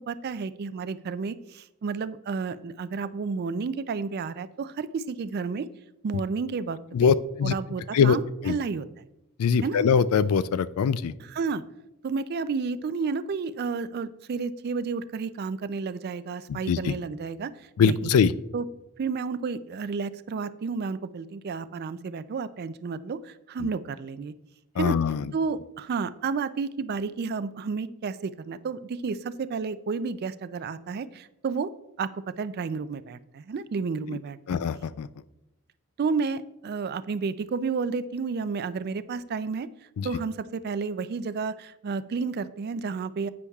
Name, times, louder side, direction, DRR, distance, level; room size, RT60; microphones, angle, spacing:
voice 1, 0.0-5.7 6.0-7.1 7.4-8.9 9.6-9.8 11.2-11.6 12.0-18.1 18.5-18.7 19.0-24.3 24.8-25.0 25.3-31.7 32.0-34.6 36.0-39.7 40.0-43.3, right 5 dB, 45° right, 14 dB, 0.3 m, -31 dB
voice 2, 6.9-7.5 7.9-8.2 8.4-8.6 9.4-11.1 16.5-16.9 17.8-18.3 23.6-23.7 24.8-25.2 34.5-35.1 40.0-40.1, left 6 dB, 80° left, 16 dB, 0.4 m, -22 dB
9.9 x 8.5 x 2.3 m, 0.92 s
head